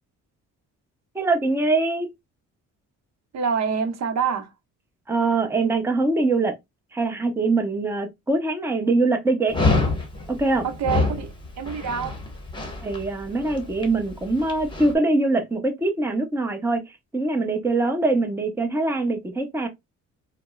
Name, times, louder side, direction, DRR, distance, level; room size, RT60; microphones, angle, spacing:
voice 1, 1.1-2.1 5.1-6.5 6.9-9.6 10.3-10.6 12.8-19.7, right 3 dB, 10° right, 0.7 m, -23 dB
voice 2, 3.3-4.5 10.6-12.2, right 6 dB, 60° right, 0.7 m, -26 dB
Dog, 9.5-14.9, left 3 dB, 15° left, 1.0 m, -27 dB
4.2 x 2.0 x 2.2 m
cardioid pair, 90°, 30 cm